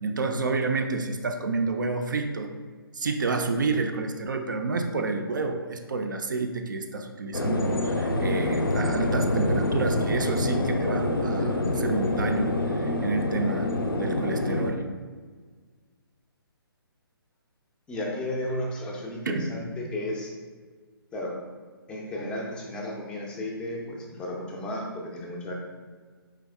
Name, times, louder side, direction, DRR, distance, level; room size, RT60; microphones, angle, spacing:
voice 1, 0.0-2.5 2.9-13.7 14.0-14.9 19.3-19.4, right 3 dB, 55° right, 5 dB, 0.4 m, -29 dB
sound 1, 7.3-14.7, left 1 dB, 65° left, 0.6 m, -26 dB
voice 2, 17.9-20.3 21.1-21.3 21.9-25.5, left 1 dB, 5° left, -2 dB, 0.5 m, -33 dB
4.6 x 3.4 x 3.4 m, 1.5 s
figure-of-eight pair, 135°, 13 cm